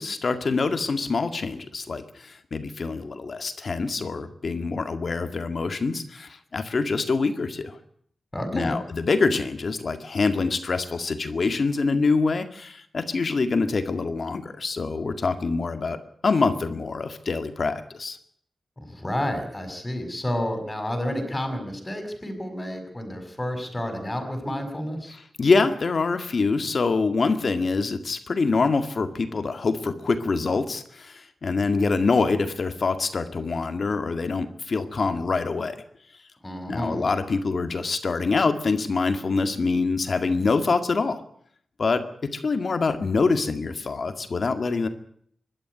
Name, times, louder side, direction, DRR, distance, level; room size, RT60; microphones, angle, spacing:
voice 1, 0.0-7.8 8.5-18.2 25.1-35.8 36.7-41.2 41.8-44.9, left 4 dB, 55° left, 8 dB, 2.0 m, -25 dB
voice 2, 8.3-8.8 18.9-25.2 36.4-37.1, left 1 dB, 15° left, 6 dB, 6.2 m, -30 dB
24.5 x 12.5 x 9.7 m, 0.66 s
wide cardioid pair, 120°, 0 cm